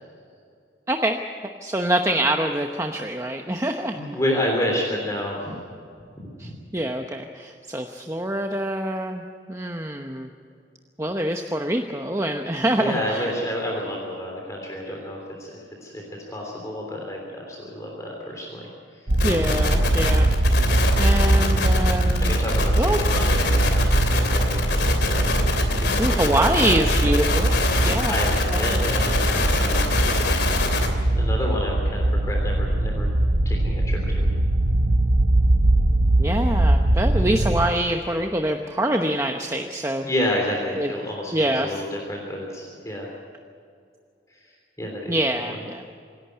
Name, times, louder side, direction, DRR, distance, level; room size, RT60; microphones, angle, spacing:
voice 1, 0.9-1.2 1.6-4.0 6.4-10.3 11.0-13.3 19.2-20.3 21.0-22.3 22.8-23.0 26.0-27.5 27.8-28.2 28.5-28.8 36.2-40.0 40.8-40.9 41.3-41.8 45.1-45.8, right 1 dB, 15° right, 4 dB, 0.9 m, -25 dB
voice 2, 3.9-5.4 6.4-6.5 12.7-18.7 19.0-19.1 22.2-25.5 25.8-26.0 26.3-26.8 27.7-29.2 29.5-30.0 31.2-33.1 33.4-34.3 40.0-43.1 44.3-44.4 44.8-45.2, left 1 dB, 15° left, -1 dB, 3.3 m, -30 dB
sound 1, 19.1-37.7, right 1 dB, 85° right, 1.2 m, -21 dB
sound 2, 19.2-30.9, left 3 dB, 60° left, 3.0 m, -26 dB
26.5 x 11.5 x 9.5 m, 2.4 s
head